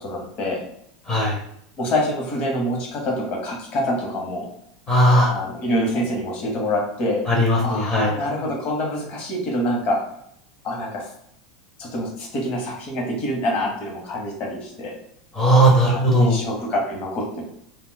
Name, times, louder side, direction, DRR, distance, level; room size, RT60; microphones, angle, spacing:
voice 1, 0.0-0.6 1.8-4.5 5.3-7.2 7.6-10.0 10.6-11.1 11.8-15.0 15.9-17.5, left 1 dB, 45° left, -1 dB, 1.0 m, -26 dB
voice 2, 4.9-5.3 7.3-8.1 15.3-16.4, right 1 dB, 25° left, -1 dB, 0.7 m, -17 dB
2.3 x 2.1 x 3.8 m, 0.72 s
supercardioid pair, 120°, 3 cm